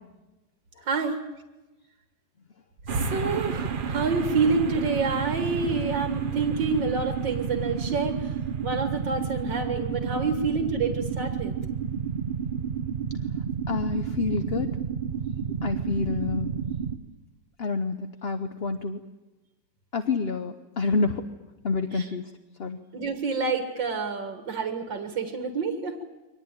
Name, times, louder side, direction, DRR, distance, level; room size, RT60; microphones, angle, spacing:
voice 1, 0.9-1.2 2.9-8.3 8.6-11.5 21.9-22.1 22.9-26.0, right 4 dB, 80° right, 5 dB, 2.3 m, -28 dB
sound 1, 2.9-17.0, right 7 dB, 40° right, 0.7 m, -31 dB
voice 2, 13.7-14.8 15.6-16.6 17.6-19.0 19.9-21.2 21.6-22.3 22.6-22.8, left 4 dB, 45° left, 8 dB, 0.9 m, -28 dB
24.0 x 19.0 x 9.0 m, 1.1 s
omnidirectional pair, 2.0 m